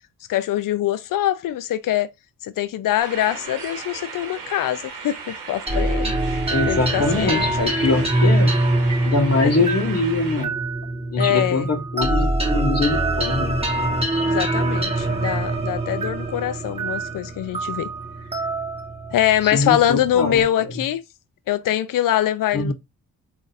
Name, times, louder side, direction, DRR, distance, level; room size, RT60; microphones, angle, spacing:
voice 1, 0.3-2.1 2.4-6.1 6.7-7.5 9.4-9.5 11.2-11.7 14.2-17.9 19.1-21.0 21.5-22.7, left 12 dB, 65° left, 0.5 m, -23 dB
sound 1, 3.0-10.5, right 5 dB, 85° right, 0.9 m, -36 dB
sound 2, 5.7-20.4, right 2 dB, 15° right, 1.3 m, -24 dB
voice 2, 6.5-8.6 9.1-10.6 11.1-13.7 19.4-20.4 22.5-22.7, left 3 dB, 45° left, 1.0 m, -23 dB
3.7 x 2.6 x 2.6 m
supercardioid pair, 45°, 35 cm